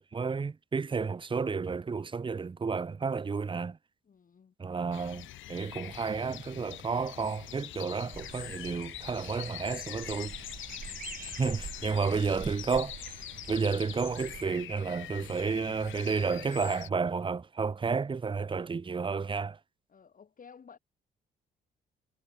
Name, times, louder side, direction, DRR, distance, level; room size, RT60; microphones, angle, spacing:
voice 1, 0.0-3.8 4.6-10.3 11.2-12.9 13.5-19.6, right 5 dB, 25° right, 0.8 m, -31 dB
voice 2, 4.0-4.5 10.8-11.2 15.4-16.3 19.9-20.8, left 6 dB, 45° left, 4.0 m, -56 dB
sound 1, 4.9-16.9, left 14 dB, 80° left, 1.0 m, -44 dB
sound 2, 8.1-14.5, right 7 dB, 45° right, 2.5 m, -46 dB
cardioid pair, 90°, 20 cm